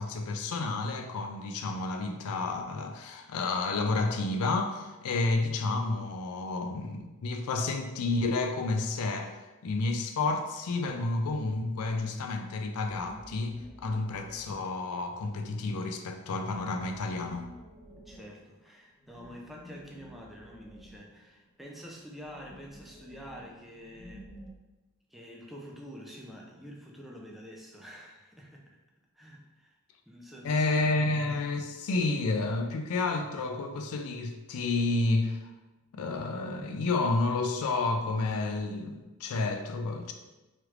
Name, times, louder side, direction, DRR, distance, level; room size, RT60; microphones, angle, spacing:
voice 1, 0.0-9.4 9.6-17.5 30.4-35.5 35.9-40.1, left 3 dB, 70° left, 5 dB, 0.4 m, -30 dB
sound 1, 12.8-14.9 16.3-21.6 22.2-24.5, equal, 25° left, 0.8 m, -51 dB
voice 2, 18.1-24.3 25.1-28.7 29.2-29.7 30.1-30.7, equal, ahead, -2 dB, 0.4 m, -47 dB
3.1 x 3.0 x 2.4 m, 1.1 s
head